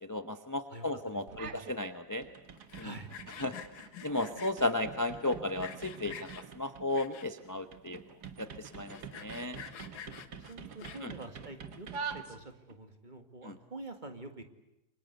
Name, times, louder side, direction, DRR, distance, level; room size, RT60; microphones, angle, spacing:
voice 1, 0.0-2.2 2.8-2.9 3.4-3.6 4.0-8.0 8.4-9.6 11.0-11.1 13.4-13.5, left 2 dB, 15° left, 9 dB, 0.6 m, -34 dB
voice 2, 0.7-1.7 2.8-3.4 10.5-14.4, right 2 dB, 25° right, 7 dB, 2.1 m, -47 dB
sound 1, 1.3-1.8 2.1-12.8, right 6 dB, 55° right, 2.0 m, -46 dB
Sawing, 2.6-4.7 5.3-6.4 6.9-7.5 8.0-8.1 8.2-8.3 8.7-11.2, left 8 dB, 85° left, 2.3 m, -47 dB
29.0 x 24.0 x 8.1 m, 0.87 s
omnidirectional pair, 2.1 m